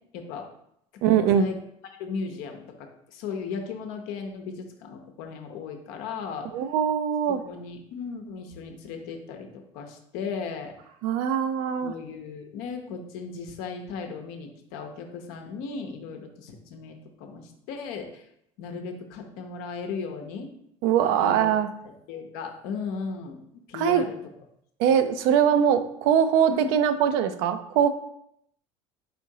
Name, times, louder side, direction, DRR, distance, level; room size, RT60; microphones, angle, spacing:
voice 1, 0.1-0.5 1.1-1.6 2.0-6.5 7.3-10.7 11.8-18.3 18.6-20.5 21.0-21.5 22.1-23.4 23.7-24.2 24.9-25.0 26.5-26.7, left 5 dB, 65° left, 4 dB, 0.7 m, -36 dB
voice 2, 1.0-1.5 6.5-7.4 11.0-11.9 20.8-21.7 23.7-24.0 24.8-27.9, right 8 dB, 65° right, 10 dB, 0.4 m, -22 dB
4.2 x 3.6 x 2.7 m, 0.75 s
hypercardioid pair, 70°, 17 cm